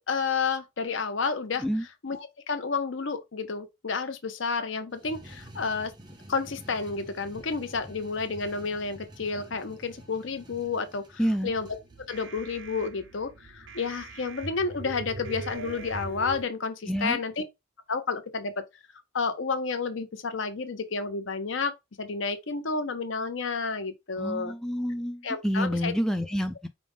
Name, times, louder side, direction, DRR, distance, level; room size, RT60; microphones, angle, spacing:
voice 1, 0.1-1.6 2.0-5.9 6.3-11.0 11.4-11.7 12.1-17.4 17.9-18.5 19.1-24.5 25.2-25.9, left 4 dB, 70° left, 0.8 m, -30 dB
sound 1, 4.9-12.3, right 1 dB, 20° right, 0.8 m, -49 dB
voice 2, 11.2-11.5 16.9-17.2 24.2-26.7, equal, 5° left, 0.3 m, -28 dB
sound 2, 11.5-16.4, right 3 dB, 65° right, 0.7 m, -41 dB
5.1 x 2.4 x 3.5 m
head